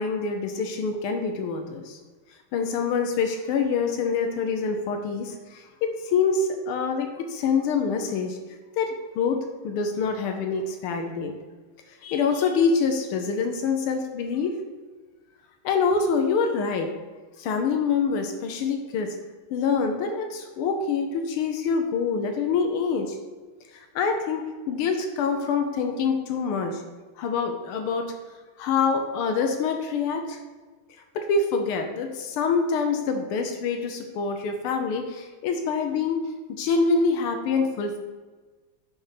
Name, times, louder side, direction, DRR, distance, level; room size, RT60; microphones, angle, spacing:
voice 1, 0.0-2.0 2.5-8.4 8.8-11.3 12.0-14.5 15.6-16.9 17.4-19.2 19.5-23.2 23.7-26.8 27.2-28.1 28.6-30.4 31.1-38.0, left 5 dB, 90° left, 4 dB, 1.6 m, -26 dB
9.7 x 3.4 x 5.7 m, 1.3 s
omnidirectional pair, 2.3 m